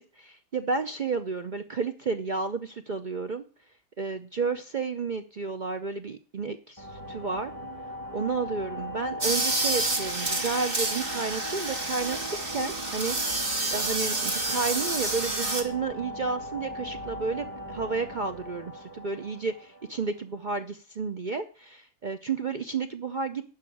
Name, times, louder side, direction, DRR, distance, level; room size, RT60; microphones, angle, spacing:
voice 1, 0.0-3.4 4.0-7.5 8.1-13.4 13.7-23.4, right 4 dB, 70° right, 8 dB, 0.4 m, -31 dB
sound 1, 6.8-20.3, equal, 15° right, 1.2 m, -39 dB
sound 2, 9.2-15.6, right 2 dB, 35° right, 1.8 m, -29 dB
11.5 x 5.1 x 8.5 m, 0.38 s
omnidirectional pair, 1.8 m